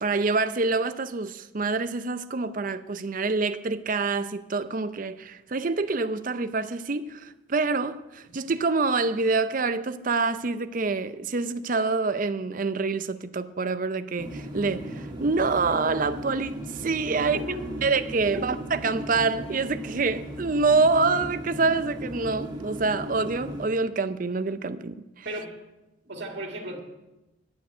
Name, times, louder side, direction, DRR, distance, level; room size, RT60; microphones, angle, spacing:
voice 1, 0.0-17.4 17.8-25.3, right 4 dB, 40° right, 0.5 m, -26 dB
sound 1, 14.2-23.6, right 1 dB, 20° right, 1.8 m, -37 dB
voice 2, 17.1-17.7 25.2-25.5 26.0-26.8, right 1 dB, 55° right, 2.1 m, -35 dB
11.5 x 7.0 x 9.2 m
head